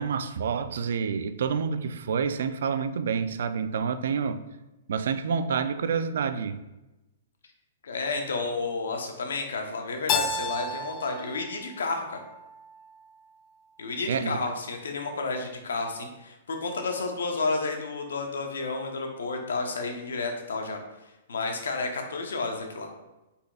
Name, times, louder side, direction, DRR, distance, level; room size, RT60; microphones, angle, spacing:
voice 1, 0.0-4.4 4.9-6.6 14.1-14.4, right 6 dB, 70° right, 11 dB, 0.3 m, -28 dB
voice 2, 7.8-12.2 13.8-20.8 21.3-22.9, left 3 dB, 90° left, 4 dB, 0.8 m, -31 dB
Keyboard (musical), 10.1-12.9, left 4 dB, 30° left, 0.3 m, -32 dB
4.8 x 4.2 x 2.4 m, 1.0 s
hypercardioid pair, 150°, 0 cm